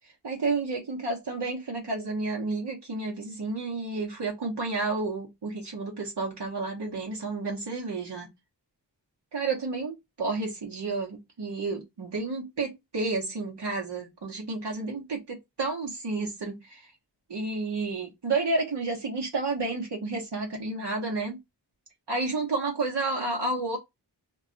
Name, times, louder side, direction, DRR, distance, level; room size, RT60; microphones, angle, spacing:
voice 1, 0.2-8.3 9.3-16.9 17.3-21.4 22.1-23.8, right 3 dB, 75° right, 0.9 m, -31 dB
2.3 x 2.2 x 3.7 m
wide cardioid pair, 60°, 41 cm